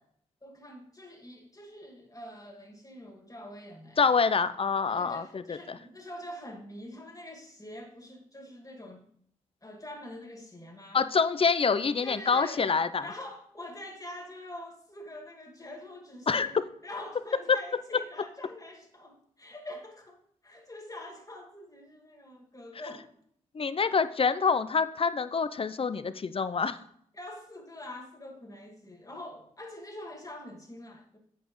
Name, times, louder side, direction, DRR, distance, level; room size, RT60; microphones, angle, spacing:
voice 1, 0.4-4.1 4.9-9.1 9.6-11.0 11.7-11.8 12.0-23.1 27.1-31.2, left 1 dB, 25° left, 2.1 m, -45 dB
voice 2, 4.0-5.8 10.9-13.0 16.3-16.5 23.5-26.8, left 5 dB, 40° left, 0.6 m, -26 dB
7.9 x 7.3 x 3.1 m
hypercardioid pair, 40°, 15 cm